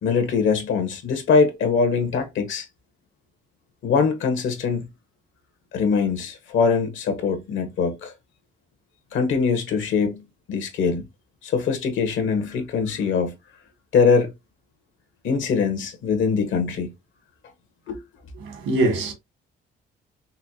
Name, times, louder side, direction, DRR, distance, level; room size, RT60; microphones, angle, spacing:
voice 1, 0.0-2.6 3.8-4.9 5.7-8.1 9.1-11.1 11.4-13.4 13.9-14.3 15.2-16.9 17.9-18.0, left 5 dB, 75° left, 1.4 m, -22 dB
voice 2, 18.4-19.1, right 2 dB, 85° right, 2.3 m, -23 dB
5.6 x 2.3 x 2.8 m
cardioid pair, 90°, 20 cm